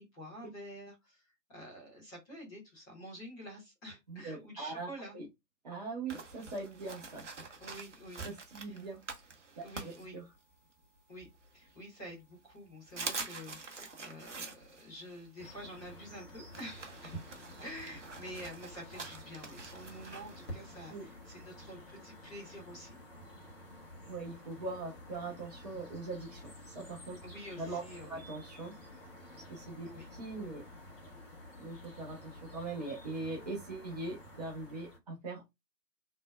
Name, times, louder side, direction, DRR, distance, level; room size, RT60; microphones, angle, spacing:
voice 1, 0.0-5.1 7.6-8.2 8.6-8.8 9.6-10.2 11.1-11.3 11.5-17.2 17.6-22.9 27.2-28.2 29.8-30.1, equal, 10° left, -7 dB, 1.3 m, -48 dB
voice 2, 4.1-4.9 5.1-5.3 5.6-7.6 8.2-9.0 9.5-10.2 20.9-21.0 24.1-27.2 27.6-28.7 29.5-30.6 31.6-35.5, right 3 dB, 25° right, -3 dB, 1.3 m, -41 dB
sound 1, 6.1-10.7 11.2-12.1 12.5-12.6 12.9-21.7, right 4 dB, 45° right, 1.0 m, -46 dB
sound 2, 15.4-35.0, left 1 dB, 35° left, 1.6 m, -51 dB
4.1 x 3.3 x 2.2 m, 0.20 s
figure-of-eight pair, 145°, 49 cm